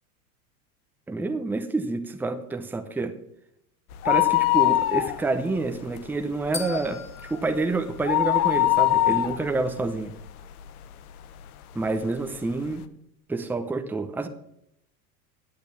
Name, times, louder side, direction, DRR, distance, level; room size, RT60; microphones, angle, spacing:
voice 1, 1.1-3.1 4.0-10.1 11.7-12.8 13.3-14.3, right 3 dB, 5° right, 6 dB, 0.8 m, -28 dB
sound 1, 3.9-5.6 5.9-6.0 6.5-10.8 11.4-11.5 12.3-12.4 12.6-12.7, left 16 dB, 70° left, 1.0 m, -23 dB
sound 2, 6.5-8.8, left 4 dB, 25° left, 2.1 m, -40 dB
8.6 x 8.6 x 7.0 m, 0.77 s
hypercardioid pair, 110°, 46 cm